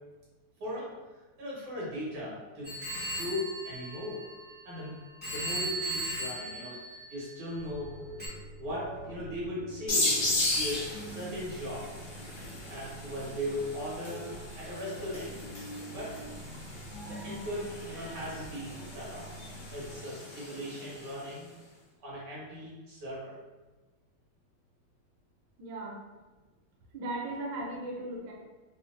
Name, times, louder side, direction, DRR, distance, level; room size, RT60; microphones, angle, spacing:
voice 1, 0.6-2.8 3.1-4.2 4.6-4.9 5.3-7.9 8.6-10.2 10.5-11.9 12.2-14.2 14.5-15.3 15.9-16.1 17.0-19.3 19.7-21.5 22.0-23.3, left 1 dB, 90° right, -7 dB, 2.2 m, -38 dB
Telephone, 2.6-4.8 5.2-7.5 8.2-8.3, right 1 dB, 10° left, 0.5 m, -37 dB
sound 1, 7.5-20.0, right 2 dB, 80° left, 0.9 m, -46 dB
sound 2, 9.9-21.2, left 2 dB, 50° left, 0.9 m, -36 dB
voice 2, 25.6-26.0 26.9-28.3, right 1 dB, 75° right, -2 dB, 1.3 m, -37 dB
4.2 x 2.1 x 2.4 m, 1.2 s
omnidirectional pair, 2.3 m